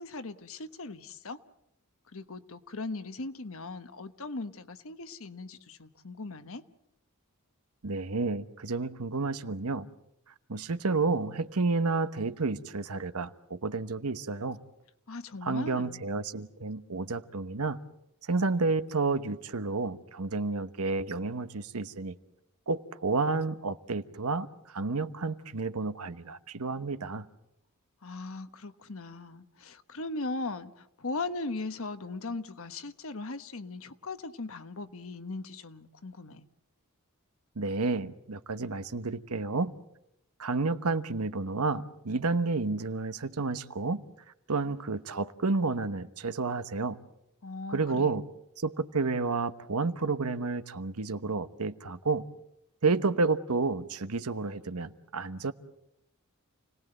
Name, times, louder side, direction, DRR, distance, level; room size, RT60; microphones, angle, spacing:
voice 1, 0.0-1.4 2.1-6.6 15.1-16.0 28.0-36.5 47.4-48.2, left 3 dB, 65° left, 1.2 m, -39 dB
voice 2, 7.8-9.9 10.5-14.6 15.4-17.8 18.2-22.2 22.7-27.3 37.6-39.7 40.4-44.0 44.5-47.0 47.7-48.2 48.6-52.2 52.8-55.5, right 3 dB, 85° right, 1.1 m, -30 dB
29.0 x 19.0 x 7.8 m
head